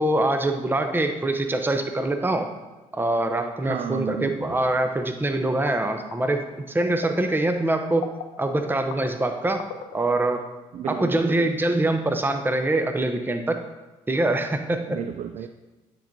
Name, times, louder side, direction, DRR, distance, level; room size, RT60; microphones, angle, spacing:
voice 1, 0.0-2.5 2.9-8.1 8.4-9.6 9.9-10.4 10.8-13.6 14.1-15.0, right 2 dB, 15° right, 6 dB, 0.7 m, -24 dB
voice 2, 3.6-4.6 10.7-11.5 14.9-15.5, right 8 dB, 55° right, 8 dB, 0.4 m, -32 dB
sound 1, 5.4-10.4, left 8 dB, 80° left, 0.4 m, -42 dB
9.9 x 4.6 x 2.7 m, 1.1 s
hypercardioid pair, 50°, 15 cm